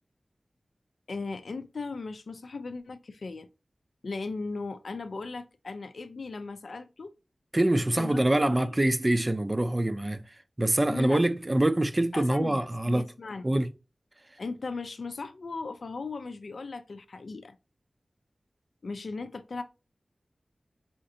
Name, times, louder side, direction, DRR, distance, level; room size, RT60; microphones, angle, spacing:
voice 1, 1.1-3.5 4.0-7.1 8.0-8.7 10.9-11.3 12.1-13.6 14.4-17.6 18.8-19.6, left 3 dB, 75° left, 0.4 m, -37 dB
voice 2, 7.5-13.1 13.4-13.7, right 1 dB, 25° right, 0.5 m, -25 dB
4.3 x 3.8 x 2.6 m
wide cardioid pair, 90°, 0 cm